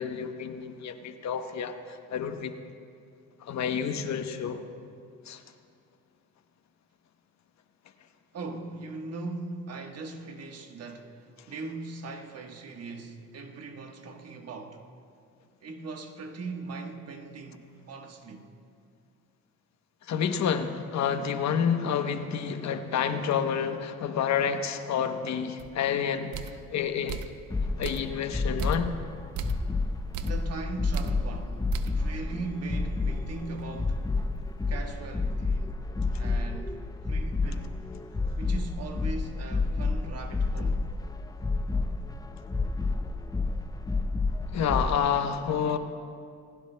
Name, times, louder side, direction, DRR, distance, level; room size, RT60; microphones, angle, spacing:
voice 1, 0.0-1.7 2.1-2.5 3.4-4.6 5.3-5.4 20.1-26.3 26.7-27.2 27.8-28.9 44.5-45.8, left 7 dB, 65° left, 0.9 m, -29 dB
voice 2, 8.3-14.8 15.6-18.5 30.2-34.0 34.7-35.7 36.2-37.7 38.4-40.8, right 3 dB, 55° right, 1.3 m, -39 dB
sound 1, 25.6-25.7 26.3-26.7 27.1-27.4 27.8-28.2 28.6-28.9 29.3-29.7 30.1-30.5 30.9-31.2 31.7-32.0 32.4-32.5 33.0-34.5, right 8 dB, 85° right, 0.6 m, -38 dB
sound 2, 27.5-44.9, left 3 dB, 10° left, 0.5 m, -30 dB
19.5 x 16.0 x 2.2 m
cardioid pair, 90°, 30 cm